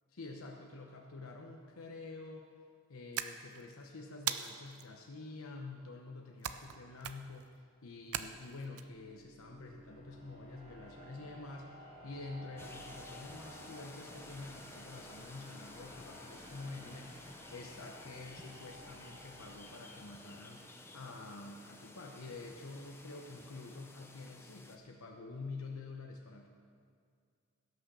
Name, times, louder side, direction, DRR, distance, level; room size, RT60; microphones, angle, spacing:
voice 1, 0.1-2.5 2.9-26.5, left 3 dB, 70° left, 1 dB, 0.9 m, -48 dB
sound 1, 3.1-3.7 4.3-4.9 6.4-6.8 7.0-7.4 8.1-8.8, right 10 dB, 80° right, 0.6 m, -39 dB
sound 2, 8.0-20.9, equal, 25° right, 1.6 m, -55 dB
sound 3, 12.6-24.8, left 2 dB, 10° left, 0.6 m, -53 dB
16.0 x 6.5 x 6.8 m, 2.2 s
head